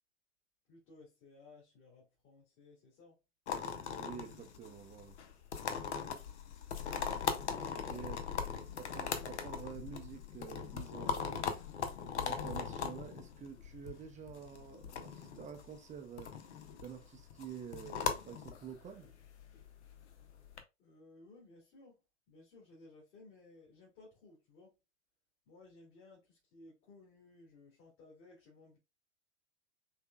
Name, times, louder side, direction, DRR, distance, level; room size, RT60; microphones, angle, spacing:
voice 1, 0.7-3.2 7.5-8.1 20.8-22.0 22.3-24.7 25.5-28.8, left 3 dB, 45° left, 2.5 m, -59 dB
sound 1, 3.5-20.6, left 7 dB, 70° left, 0.9 m, -40 dB
voice 2, 4.0-5.2 7.8-8.2 8.5-11.6 12.2-16.4 16.8-19.1, right 7 dB, 20° right, 0.5 m, -48 dB
5.7 x 3.5 x 2.2 m
figure-of-eight pair, 90°, 36 cm